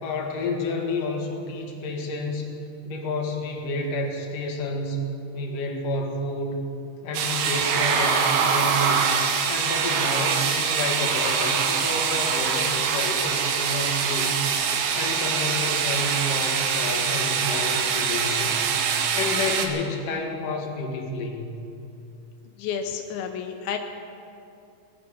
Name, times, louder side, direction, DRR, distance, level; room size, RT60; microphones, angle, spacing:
voice 1, 0.0-2.5 2.8-5.0 5.3-6.6 7.0-9.1 9.5-14.5 14.9-18.7 19.1-21.5, left 2 dB, 65° left, 1 dB, 3.2 m, -30 dB
sound 1, 7.1-19.7, right 6 dB, 75° right, 2.9 m, -24 dB
voice 2, 22.6-23.8, left 7 dB, 90° left, 4 dB, 2.8 m, -30 dB
20.5 x 11.0 x 6.3 m, 2.7 s
omnidirectional pair, 4.2 m